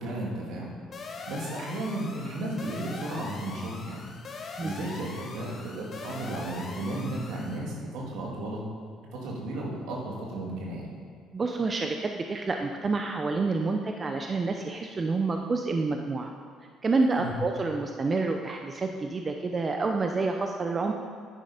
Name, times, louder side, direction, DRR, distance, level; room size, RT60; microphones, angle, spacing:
voice 1, 0.0-4.1 4.4-8.6 9.1-10.9 17.2-17.3, right 1 dB, 75° right, -2 dB, 2.6 m, -34 dB
sound 1, 0.9-7.6, left 4 dB, 50° left, 1.5 m, -42 dB
voice 2, 11.3-16.3 16.8-20.9, right 3 dB, 35° right, 4 dB, 0.8 m, -28 dB
10.0 x 9.9 x 5.2 m, 2.1 s
hypercardioid pair, 60°, 0 cm